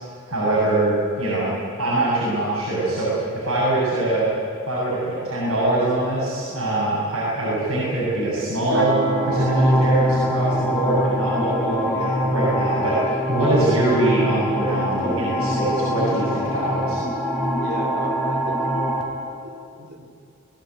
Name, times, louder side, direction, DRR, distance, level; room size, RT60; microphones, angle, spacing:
voice 1, 0.3-1.5 1.8-4.3 4.7-8.9 9.2-17.0, right 2 dB, 80° right, -8 dB, 8.0 m, -23 dB
sound 1, 8.7-14.7, right 3 dB, 60° right, 1.9 m, -32 dB
sound 2, 9.0-19.0, equal, ahead, 3.8 m, -23 dB
voice 2, 17.6-18.6 19.4-20.0, equal, 45° right, 4 dB, 3.0 m, -34 dB
22.0 x 18.5 x 9.5 m, 2.5 s
head